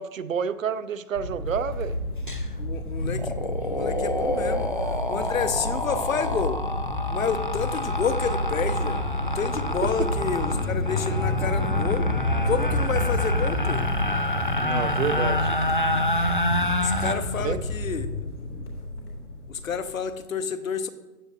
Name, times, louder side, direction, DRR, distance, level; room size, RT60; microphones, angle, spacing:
voice 1, 0.0-2.0 14.6-15.5 17.4-17.6, right 7 dB, 60° right, 15 dB, 0.6 m, -29 dB
sound 1, 1.1-20.1, left 1 dB, 85° left, 2.9 m, -30 dB
sound 2, 2.3-2.4 2.8-17.1, left 1 dB, 35° left, 0.4 m, -29 dB
voice 2, 2.6-6.6 7.1-12.1 12.4-13.8 16.8-18.1 19.5-20.9, left 6 dB, 60° left, 11 dB, 0.9 m, -30 dB
sound 3, 8.0-17.9, equal, 15° left, 0.8 m, -35 dB
15.0 x 9.1 x 2.7 m, 1.1 s
hypercardioid pair, 175°, 45 cm